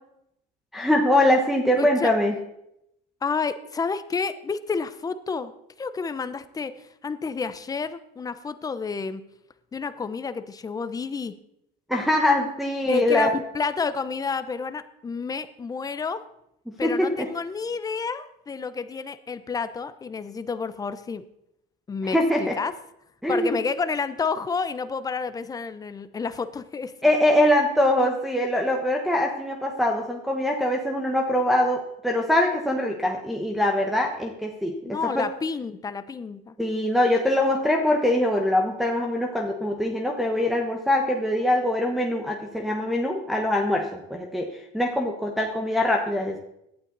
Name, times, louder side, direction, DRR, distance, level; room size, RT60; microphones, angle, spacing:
voice 1, 0.7-2.3 11.9-13.3 16.8-17.3 22.0-22.5 23.2-23.6 27.0-35.3 36.6-46.4, left 1 dB, ahead, -1 dB, 1.3 m, -23 dB
voice 2, 1.8-2.1 3.2-5.5 5.8-9.2 9.7-11.3 12.8-16.2 16.8-21.2 21.9-22.7 23.3-27.1 34.8-36.5, left 5 dB, 20° left, 13 dB, 0.8 m, -30 dB
17.5 x 11.5 x 4.1 m, 0.79 s
cardioid pair, 140°, 19 cm